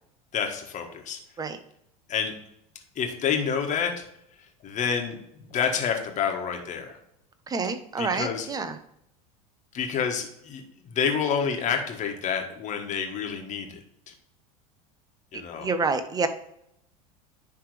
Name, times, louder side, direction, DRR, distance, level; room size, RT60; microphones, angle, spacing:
voice 1, 0.3-1.2 2.1-2.3 2.9-4.0 4.6-7.0 8.0-8.5 9.7-13.8 14.1-14.2 15.3-15.7, left 7 dB, 40° left, 4 dB, 1.6 m, -28 dB
voice 2, 7.5-8.8 15.6-16.3, right 4 dB, 20° right, 9 dB, 0.8 m, -28 dB
10.5 x 3.5 x 3.4 m, 0.73 s
hypercardioid pair, 90°, 19 cm